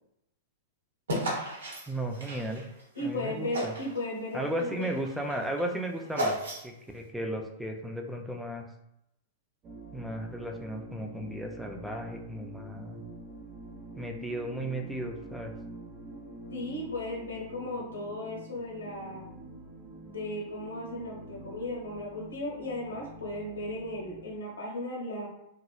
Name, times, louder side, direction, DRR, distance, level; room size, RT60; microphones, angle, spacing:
sound 1, 1.1-3.1 3.5-4.0 4.3-6.9, equal, 75° right, 0.9 m, -34 dB
voice 1, 1.9-2.6 3.0-3.7 4.3-6.4 6.6-8.7 9.9-13.0 14.0-15.5, right 1 dB, ahead, 2 dB, 0.5 m, -35 dB
voice 2, 2.9-4.9 16.5-19.3 20.0-25.3, left 1 dB, 80° left, -3 dB, 1.2 m, -36 dB
sound 2, 9.6-24.4, right 2 dB, 35° right, 0.8 m, -46 dB
2.9 x 2.9 x 2.4 m, 0.82 s
hypercardioid pair, 105°, 0 cm